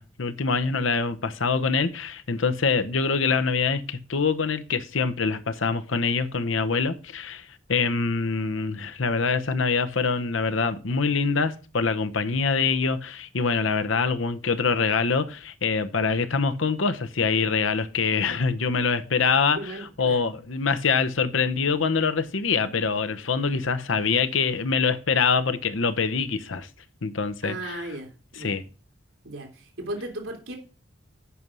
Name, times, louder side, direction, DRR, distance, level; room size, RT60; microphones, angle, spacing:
voice 1, 0.0-19.6 20.0-26.7 27.0-27.8 28.4-28.6, left 5 dB, 80° left, 0.9 m, -25 dB
voice 2, 19.5-20.2 27.4-28.6 29.2-30.6, right 1 dB, 85° right, 2.6 m, -36 dB
8.4 x 5.4 x 6.2 m
head